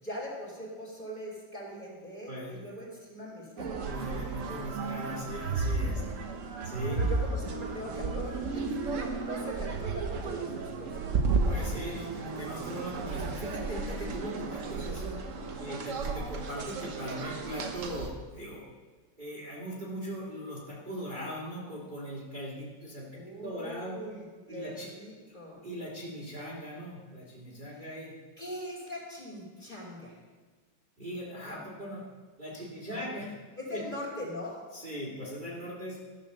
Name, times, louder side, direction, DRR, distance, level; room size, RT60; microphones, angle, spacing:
voice 1, 0.0-3.9 6.9-11.1 15.7-15.8 23.1-25.6 27.7-27.9 28.4-30.2 32.8-33.1 33.6-34.6, left 1 dB, 25° left, -4 dB, 2.9 m, -41 dB
voice 2, 2.3-2.7 3.8-6.0 6.6-7.0 11.4-15.2 15.6-18.6 19.2-24.0 24.5-24.9 25.6-28.1 31.0-32.0 32.4-33.3 33.7-33.8 34.7-36.0, equal, 25° right, -6 dB, 2.1 m, -39 dB
sound 1, 3.6-18.1, right 4 dB, 50° right, 1.0 m, -33 dB
13.5 x 6.0 x 6.7 m, 1.4 s
omnidirectional pair, 2.1 m